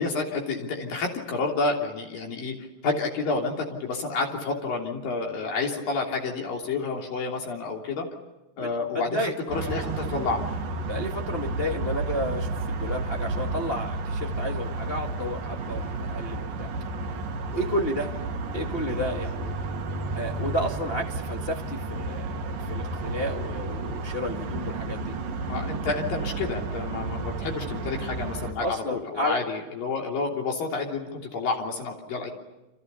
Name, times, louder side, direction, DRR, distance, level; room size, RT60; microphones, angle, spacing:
voice 1, 0.0-2.5 2.8-8.1 8.6-10.4 25.5-32.3, left 3 dB, 70° left, 1 dB, 4.8 m, -29 dB
voice 2, 8.6-9.3 10.9-16.7 17.5-18.1 18.5-19.5 20.1-25.1 28.6-29.4, equal, 25° left, 1 dB, 1.3 m, -31 dB
sound 1, 9.5-28.5, right 3 dB, 70° right, 3.7 m, -32 dB
29.5 x 28.0 x 6.9 m, 1.0 s
omnidirectional pair, 4.2 m